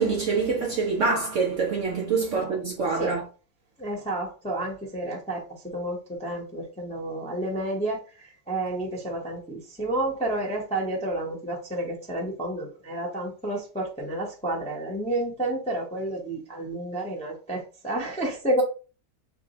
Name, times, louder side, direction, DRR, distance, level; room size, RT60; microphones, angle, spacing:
voice 1, 0.0-3.2, right 4 dB, 60° right, 0.8 m, -25 dB
voice 2, 3.8-18.6, right 1 dB, 10° left, 0.4 m, -30 dB
3.3 x 2.5 x 4.0 m
omnidirectional pair, 1.8 m